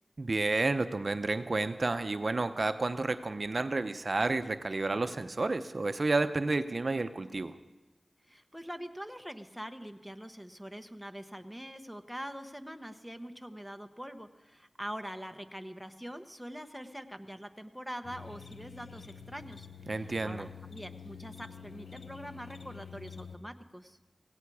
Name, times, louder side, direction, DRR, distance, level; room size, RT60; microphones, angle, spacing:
voice 1, 0.2-7.5 19.9-20.5, right 3 dB, 55° right, 10 dB, 0.6 m, -31 dB
voice 2, 8.3-24.0, equal, ahead, 9 dB, 1.0 m, -44 dB
sound 1, 18.0-23.4, left 7 dB, 85° left, 0.8 m, -48 dB
17.0 x 16.5 x 4.8 m, 1.1 s
wide cardioid pair, 55°, 0 cm